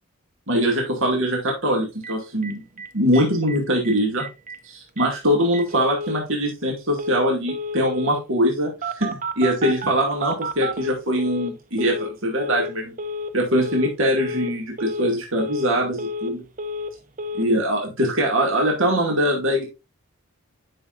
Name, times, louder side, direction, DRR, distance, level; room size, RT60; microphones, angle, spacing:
voice 1, 0.5-2.6 2.9-4.3 4.6-8.7 9.0-12.9 13.3-16.4 17.4-19.6, equal, 60° right, 0 dB, 2.3 m, -22 dB
Telephone, 2.0-2.1 2.4-2.5 2.8-2.9 3.1-3.6 3.8-3.9 4.2-4.6 5.0-5.1 5.5-6.2 7.0-7.2 7.5-8.2 8.8-11.5 11.8-12.1 12.4-12.7 13.0-13.3 13.6-13.9 14.2-14.5 14.8-15.1 15.4-16.3 16.6-16.9 17.2-17.4, left 1 dB, 35° right, 0.8 m, -30 dB
11.0 x 6.1 x 2.6 m, 0.27 s
head